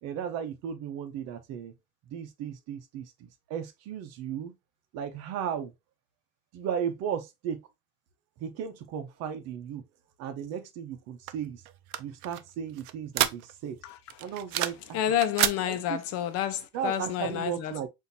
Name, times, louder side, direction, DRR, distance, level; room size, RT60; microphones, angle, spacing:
voice 1, 0.0-1.7 2.1-4.5 4.9-5.7 6.5-7.6 8.4-9.8 10.2-11.6 12.0-13.8 14.2-15.2 15.7-16.0 16.7-17.9, right 8 dB, 60° right, 0.8 m, -35 dB
sound 1, 11.3-13.8 14.1-14.9 15.1-15.6, right 13 dB, 80° right, 0.5 m, -29 dB
voice 2, 13.8-14.3 14.9-17.7, left 10 dB, 55° left, 0.8 m, -30 dB
5.6 x 2.7 x 2.7 m
cardioid pair, 150°, 29 cm